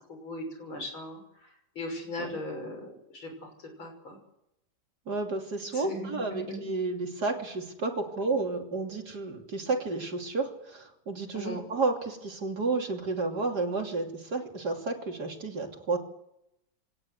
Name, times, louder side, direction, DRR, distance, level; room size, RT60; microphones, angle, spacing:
voice 1, 0.1-1.2 1.8-3.5 3.8-4.2 5.7-6.6 11.3-11.6, left 1 dB, 90° left, 4 dB, 7.0 m, -38 dB
voice 2, 5.1-16.0, right 3 dB, 55° right, 3 dB, 3.5 m, -31 dB
23.5 x 18.5 x 8.2 m, 0.82 s
omnidirectional pair, 2.2 m